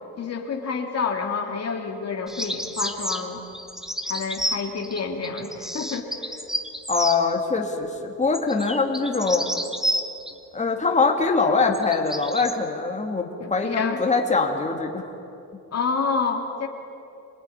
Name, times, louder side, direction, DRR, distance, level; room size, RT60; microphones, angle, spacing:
voice 1, 0.2-3.4 4.0-6.3 13.4-14.0 15.7-16.7, left 5 dB, 40° left, 2 dB, 2.4 m, -28 dB
sound 1, 2.3-7.2 8.3-10.3 11.6-12.6, equal, ahead, 1.4 m, -30 dB
voice 2, 6.9-9.5 10.5-15.1, left 4 dB, 20° left, 1 dB, 2.6 m, -23 dB
26.0 x 19.5 x 10.0 m, 2.8 s
cardioid pair, 120°, 39 cm